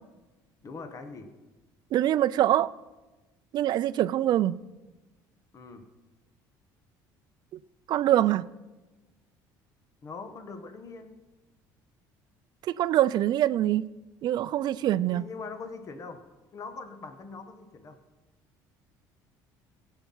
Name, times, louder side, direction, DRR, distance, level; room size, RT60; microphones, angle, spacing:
voice 1, 0.6-1.3 5.5-5.9 10.0-11.2 15.1-16.2 16.5-18.0, left 4 dB, 40° left, 1.4 m, -42 dB
voice 2, 1.9-2.7 3.5-4.6 7.9-8.4 12.7-13.8 14.2-15.3, right 13 dB, 55° right, 0.5 m, -24 dB
17.5 x 8.2 x 5.7 m
cardioid pair, 100°, 8 cm